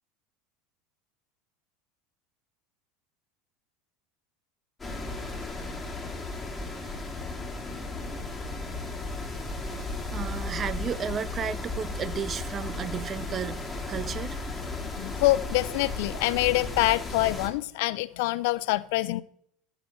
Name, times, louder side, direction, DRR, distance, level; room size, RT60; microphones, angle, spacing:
sound 1, 4.8-17.5, left 3 dB, 10° left, 2.1 m, -35 dB
voice 1, 9.8-13.6 13.9-14.4, right 7 dB, 35° right, 0.4 m, -33 dB
voice 2, 14.8-19.2, left 19 dB, 70° left, 0.5 m, -26 dB
15.5 x 5.9 x 3.2 m
supercardioid pair, 100°, 0 cm